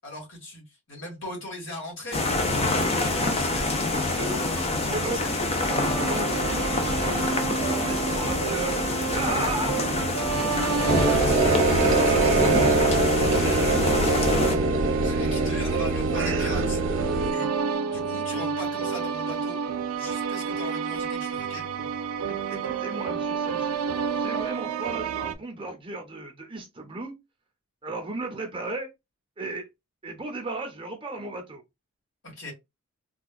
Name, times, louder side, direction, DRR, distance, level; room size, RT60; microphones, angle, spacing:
voice 1, 0.0-2.2 3.0-3.7 4.2-5.3 10.9-11.5 11.9-14.6 15.0-16.8 17.3-17.5 17.9-19.6 20.0-21.6 32.2-32.5, left 1 dB, 60° left, 1.6 m, -39 dB
sound 1, 2.1-14.6, left 2 dB, 30° left, 0.5 m, -26 dB
voice 2, 4.1-4.5 4.9-5.2 5.9-7.3 7.6-8.8 9.1-9.8 22.3-23.8 24.1-27.1 27.8-28.9 29.4-29.7 30.0-31.6, right 2 dB, 25° right, 0.7 m, -35 dB
sound 2, 5.7-25.3, right 6 dB, 80° right, 0.4 m, -30 dB
sound 3, 10.9-17.3, right 3 dB, 60° right, 0.7 m, -23 dB
3.6 x 2.3 x 2.4 m
head